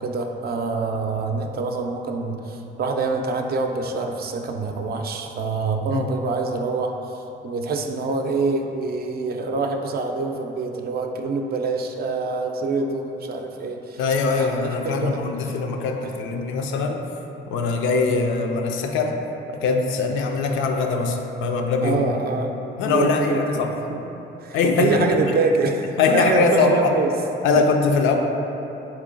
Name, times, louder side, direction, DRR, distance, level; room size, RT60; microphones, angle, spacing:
voice 1, 0.0-15.6 21.8-22.5 22.8-23.6 23.9-24.0 24.4-27.1, right 3 dB, 50° right, 3 dB, 0.4 m, -25 dB
voice 2, 14.0-17.0 17.5-19.2 19.5-22.0 22.8-23.7 24.5-25.0 26.0-26.9 27.4-28.2, left 4 dB, 85° left, 3 dB, 0.4 m, -22 dB
3.8 x 3.1 x 3.7 m, 2.9 s
cardioid pair, 90°, 20 cm